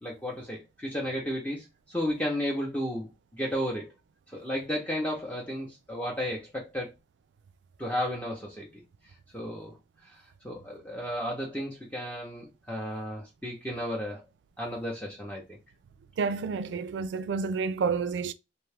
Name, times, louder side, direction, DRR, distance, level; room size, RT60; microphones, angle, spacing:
voice 1, 0.0-3.9 4.3-6.9 7.8-8.8 9.3-9.7 10.1-14.2 14.6-15.6, equal, 10° left, 0.6 m, -33 dB
voice 2, 16.2-18.3, right 5 dB, 75° right, 0.3 m, -29 dB
2.7 x 2.3 x 3.3 m
head